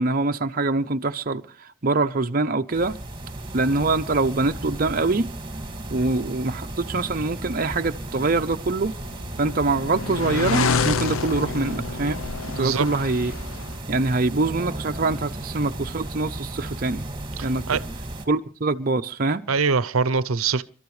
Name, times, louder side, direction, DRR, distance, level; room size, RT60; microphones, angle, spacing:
voice 1, 0.0-3.0 3.5-5.3 5.9-8.9 9.4-12.2 12.5-13.3 13.9-17.1 17.4-17.8 18.3-19.4, right 3 dB, 40° right, 0.7 m, -24 dB
sound 1, 2.7-18.3, right 1 dB, 20° right, 2.2 m, -35 dB
sound 2, 8.8-13.8, left 4 dB, 75° left, 0.7 m, -28 dB
voice 2, 12.5-12.9 17.4-17.8 19.5-20.6, right 5 dB, 80° right, 0.7 m, -23 dB
29.5 x 13.0 x 3.2 m
head